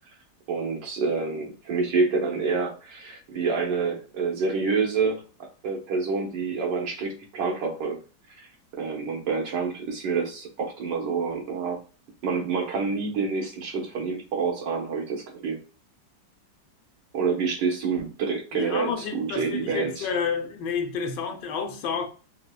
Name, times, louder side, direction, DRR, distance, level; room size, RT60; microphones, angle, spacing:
voice 1, 0.5-5.2 5.6-8.0 8.4-8.5 8.7-11.8 12.2-15.6 17.1-20.1, right 4 dB, 85° right, 1.7 m, -27 dB
voice 2, 18.5-22.1, left 6 dB, 85° left, 1.3 m, -30 dB
5.0 x 2.1 x 2.2 m
omnidirectional pair, 1.9 m